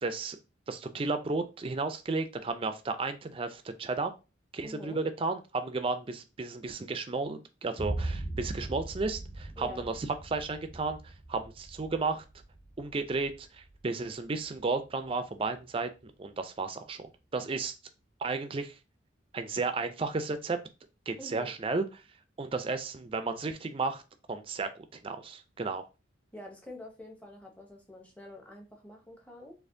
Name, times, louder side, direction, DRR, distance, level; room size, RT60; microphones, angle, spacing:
voice 1, 0.0-0.4 0.7-4.1 4.5-12.2 12.8-17.1 17.3-17.7 18.2-18.8 19.3-20.6 21.1-22.0 22.4-24.0 24.3-24.7 25.0-25.9, right 3 dB, 30° right, 9 dB, 0.4 m, -33 dB
voice 2, 4.6-5.0 9.6-9.9 21.2-21.5 26.3-29.5, left 1 dB, 5° left, 1 dB, 0.7 m, -46 dB
Boom, 7.8-15.6, right 2 dB, 20° left, 1.5 m, -40 dB
4.2 x 2.8 x 2.6 m, 0.29 s
head